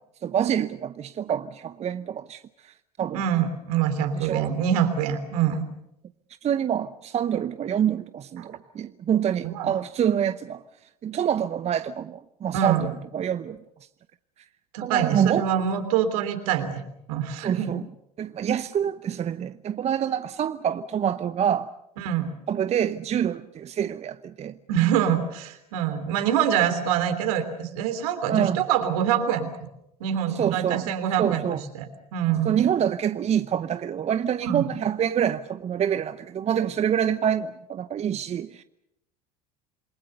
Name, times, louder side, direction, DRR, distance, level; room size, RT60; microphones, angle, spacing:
voice 1, 0.2-2.7 3.0-3.2 4.1-4.5 6.4-10.6 11.0-13.6 14.8-15.5 17.4-17.9 18.2-21.7 22.5-24.5 28.3-28.6 30.3-30.9 31.2-31.6 32.4-38.6, right 9 dB, 35° right, 0.8 m, -26 dB
voice 2, 3.1-5.6 8.4-8.5 9.4-9.7 12.5-12.9 14.7-16.8 17.1-17.7 22.0-22.3 24.7-29.7 30.0-31.9 32.1-32.6 34.4-34.7, right 9 dB, 70° right, 3.2 m, -25 dB
27.5 x 21.5 x 6.8 m
hypercardioid pair, 70°, 20 cm